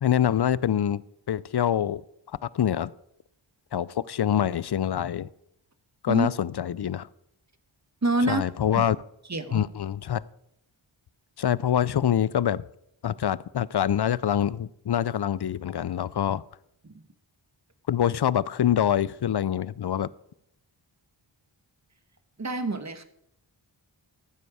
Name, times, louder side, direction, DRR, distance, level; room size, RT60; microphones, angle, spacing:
voice 1, 0.0-1.0 1.3-2.0 2.4-2.9 3.7-5.3 6.0-7.1 8.3-9.0 9.5-10.2 11.4-12.6 13.0-16.4 17.9-20.1, left 10 dB, 55° left, 21 dB, 0.5 m, -25 dB
voice 2, 8.0-8.5 8.7-8.8 9.3-9.6 16.8-17.0 22.4-23.0, right 2 dB, 35° right, 10 dB, 1.2 m, -27 dB
14.0 x 7.6 x 4.9 m, 0.76 s
wide cardioid pair, 50°, 49 cm